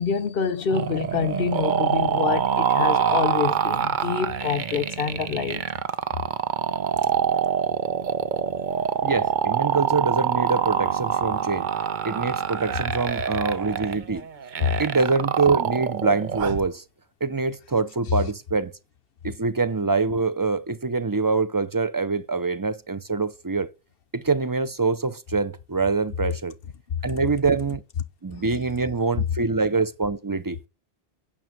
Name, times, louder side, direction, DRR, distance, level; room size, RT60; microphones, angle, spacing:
voice 1, 0.0-5.6 14.6-14.7 28.4-28.5, left 6 dB, 65° left, 1.0 m, -26 dB
sound 1, 0.7-16.7, right 7 dB, 55° right, 0.8 m, -25 dB
voice 2, 9.0-11.7 12.1-14.3 14.8-16.8 17.2-18.7 19.2-23.7 24.1-26.5 27.0-27.8 28.2-30.7, right 4 dB, 30° right, 0.4 m, -25 dB
9.3 x 6.0 x 7.7 m
omnidirectional pair, 1.0 m